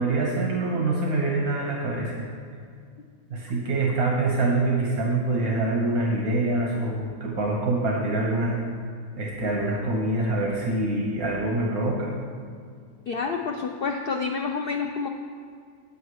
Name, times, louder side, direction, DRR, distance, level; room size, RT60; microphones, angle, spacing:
voice 1, 0.0-2.2 3.3-8.6 9.2-12.1, right 2 dB, 80° right, -2 dB, 1.6 m, -25 dB
voice 2, 13.1-15.1, left 5 dB, 80° left, 4 dB, 0.5 m, -28 dB
8.5 x 7.9 x 4.8 m, 2.1 s
omnidirectional pair, 1.5 m